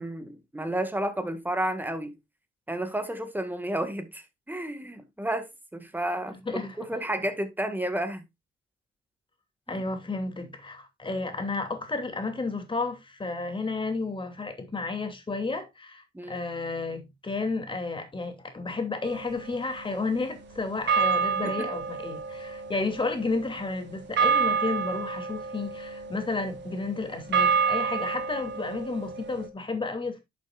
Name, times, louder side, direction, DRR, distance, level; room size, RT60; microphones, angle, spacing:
voice 1, 0.0-2.2 2.7-8.2 9.7-9.8 16.1-16.4 21.4-21.7, right 1 dB, 10° right, 1.9 m, -32 dB
voice 2, 6.3-6.8 7.2-7.3 9.7-30.2, left 3 dB, 25° left, 2.7 m, -32 dB
sound 1, 19.0-20.4 20.9-29.5, right 6 dB, 65° right, 2.1 m, -29 dB
11.0 x 6.8 x 2.5 m
cardioid pair, 90°, 20 cm